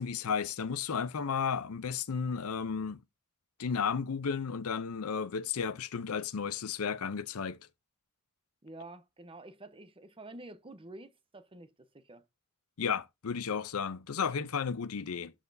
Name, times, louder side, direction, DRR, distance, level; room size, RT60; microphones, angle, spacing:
voice 1, 0.0-3.0 3.6-7.6 12.8-15.3, left 6 dB, 75° left, 0.6 m, -33 dB
voice 2, 8.6-12.2, right 2 dB, 25° right, 0.8 m, -49 dB
12.5 x 4.2 x 2.7 m
head